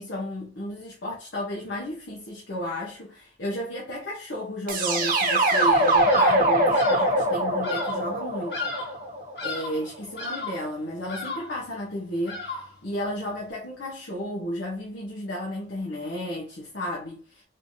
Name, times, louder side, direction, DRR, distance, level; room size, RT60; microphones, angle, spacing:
voice 1, 0.0-8.7 9.4-17.4, equal, 80° left, 1.0 m, -33 dB
sound 1, 4.7-9.6, right 1 dB, 50° right, 0.9 m, -23 dB
Bird vocalization bird call bird song, 6.1-6.5 6.7-7.2 7.6-8.1 8.5-9.0 9.4-9.8 10.2-10.7 11.1-11.6 12.3-12.8, left 3 dB, 60° left, 1.3 m, -34 dB
3.7 x 3.3 x 2.7 m
head